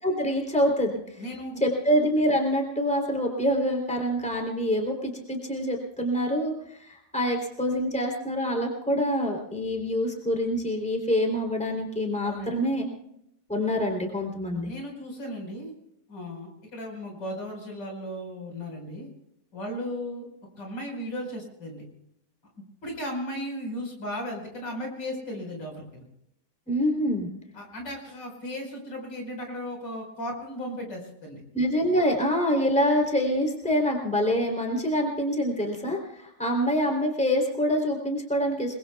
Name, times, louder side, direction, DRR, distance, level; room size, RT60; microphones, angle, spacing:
voice 1, 0.0-1.2 1.6-12.9 13.5-14.7 26.7-27.3 31.5-38.8, equal, 5° left, 1 dB, 3.2 m, -26 dB
voice 2, 1.2-1.6 12.2-12.6 14.6-15.7 16.1-19.1 19.5-20.3 20.6-21.8 22.8-26.0 27.5-31.4, equal, 75° left, 1 dB, 5.7 m, -36 dB
29.5 x 21.0 x 2.3 m, 0.76 s
omnidirectional pair, 1.9 m